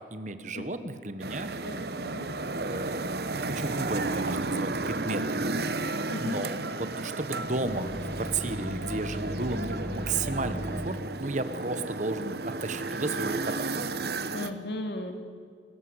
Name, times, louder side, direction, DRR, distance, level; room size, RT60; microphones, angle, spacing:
voice 1, 0.1-1.5 2.6-5.6 6.2-13.7, right 2 dB, 40° right, 11 dB, 1.3 m, -33 dB
sound 1, 1.2-14.5, right 3 dB, 60° right, 1.0 m, -33 dB
voice 2, 1.6-2.3 6.1-6.4 14.3-15.2, left 1 dB, 65° left, 5 dB, 2.8 m, -36 dB
sound 2, 7.4-11.0, equal, 10° left, 2.9 m, -37 dB
29.0 x 14.5 x 8.1 m, 2.1 s
head